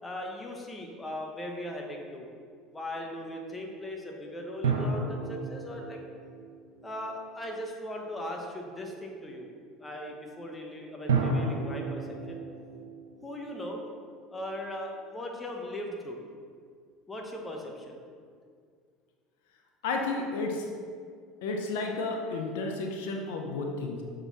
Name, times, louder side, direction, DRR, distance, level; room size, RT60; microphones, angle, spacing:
voice 1, 0.0-2.3 2.7-6.0 6.8-9.5 9.8-12.4 13.2-13.8 14.3-16.2 17.1-18.0, left 1 dB, 20° left, 1 dB, 1.2 m, -38 dB
sound 1, 4.6-7.5 11.1-14.4, right 4 dB, 90° right, 0.8 m, -33 dB
voice 2, 19.8-20.7 21.4-24.0, left 3 dB, 75° left, 2 dB, 0.7 m, -32 dB
6.9 x 4.0 x 4.1 m, 2.1 s
hypercardioid pair, 80°, 0 cm